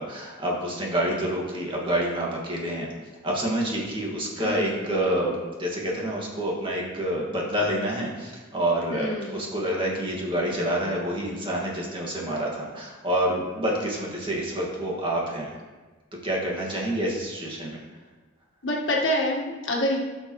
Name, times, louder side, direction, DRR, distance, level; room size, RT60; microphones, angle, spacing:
voice 1, 0.0-2.9 3.2-15.5 16.2-17.8, right 1 dB, 25° right, -3 dB, 2.0 m, -28 dB
voice 2, 4.4-4.7 8.9-9.4 18.6-20.0, left 1 dB, 70° left, -1 dB, 1.6 m, -26 dB
15.5 x 6.6 x 3.2 m, 1.3 s
head